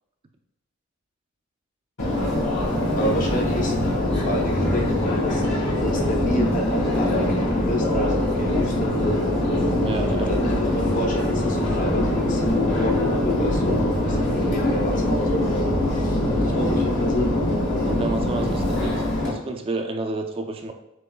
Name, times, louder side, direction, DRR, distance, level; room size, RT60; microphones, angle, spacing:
Subway metro underground, 2.0-19.3, left 1 dB, 60° left, 1.4 m, -23 dB
voice 1, 2.9-3.7 4.2-5.4 5.8-9.2 9.9-10.4 10.6-15.6 15.9-17.4, equal, 40° left, 2 dB, 0.8 m, -30 dB
voice 2, 9.8-10.3 17.9-20.7, right 3 dB, 25° right, 4 dB, 0.3 m, -30 dB
7.5 x 3.0 x 2.2 m, 0.91 s
head